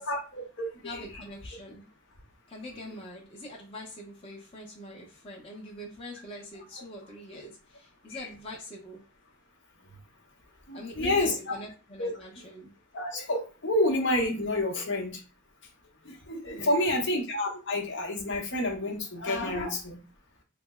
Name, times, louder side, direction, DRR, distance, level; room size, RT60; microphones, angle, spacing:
voice 1, 0.0-1.0 7.3-7.5 8.1-8.2 10.7-11.6 12.0-12.1 12.9-15.2 16.0-20.0, left 1 dB, 60° left, 1 dB, 0.9 m, -29 dB
voice 2, 0.8-1.9 2.5-9.0 10.7-12.7 16.5-17.0, equal, 25° left, -3 dB, 0.8 m, -44 dB
3.3 x 2.0 x 3.6 m, 0.33 s
head